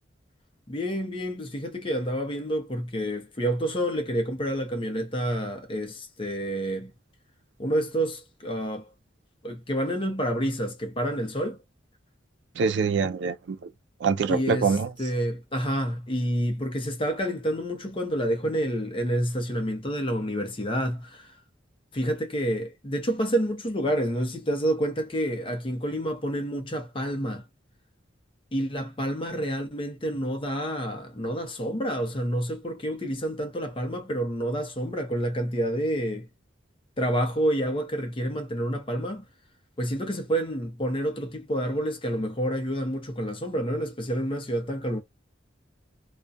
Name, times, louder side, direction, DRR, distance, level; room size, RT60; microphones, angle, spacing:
voice 1, 0.7-6.9 7.6-8.9 9.4-11.6 14.3-21.3 21.9-27.4 28.5-36.3 37.0-39.2 39.8-45.0, equal, 30° left, 0.6 m, -28 dB
voice 2, 12.6-13.7 14.0-14.9, right 5 dB, 70° right, 0.4 m, -25 dB
2.4 x 2.2 x 2.5 m
head